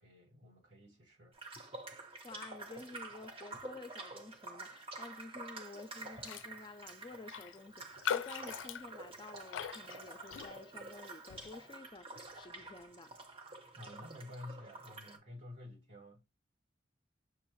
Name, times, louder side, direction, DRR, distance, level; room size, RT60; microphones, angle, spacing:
voice 1, 0.0-1.4 13.7-16.2, left 1 dB, 90° right, 2.2 m, -51 dB
sound 1, 1.3-15.2, right 3 dB, 30° right, 0.8 m, -49 dB
voice 2, 2.2-13.1, left 3 dB, 25° left, 0.4 m, -51 dB
Raindrop, 6.2-6.5 6.8-6.9 7.3-10.9 11.3-11.6, left 8 dB, 90° left, 0.3 m, -41 dB
6.2 x 2.5 x 3.1 m
head